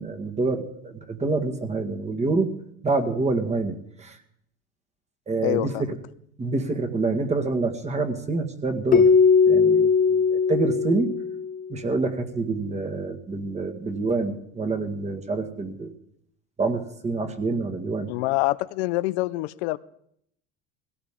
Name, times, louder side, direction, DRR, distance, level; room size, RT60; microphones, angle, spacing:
voice 1, 0.0-2.5 2.8-4.2 5.3-5.9 6.4-9.1 9.5-11.1 11.7-15.9 16.6-18.1, right 3 dB, 20° right, 5 dB, 1.8 m, -27 dB
voice 2, 5.4-5.9 18.1-19.8, left 20 dB, 80° left, 16 dB, 0.6 m, -26 dB
Keyboard (musical), 8.9-11.7, left 5 dB, 25° left, 0.7 m, -19 dB
19.0 x 17.0 x 3.7 m, 0.71 s
supercardioid pair, 110°, 32 cm